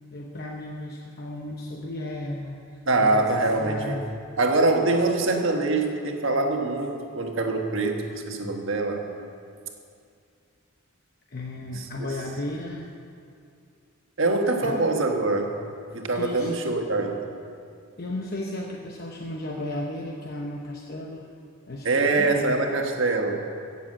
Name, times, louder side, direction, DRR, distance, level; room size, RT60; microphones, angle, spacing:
voice 1, 0.1-4.1 11.3-12.9 14.6-14.8 16.1-16.5 18.0-21.3 21.7-22.6, left 1 dB, 45° left, 0 dB, 0.9 m, -34 dB
voice 2, 2.9-4.0 4.4-9.0 14.2-15.6 15.9-17.2 21.8-23.5, right 2 dB, 60° right, 3 dB, 1.5 m, -24 dB
16.5 x 7.3 x 7.6 m, 2.4 s
head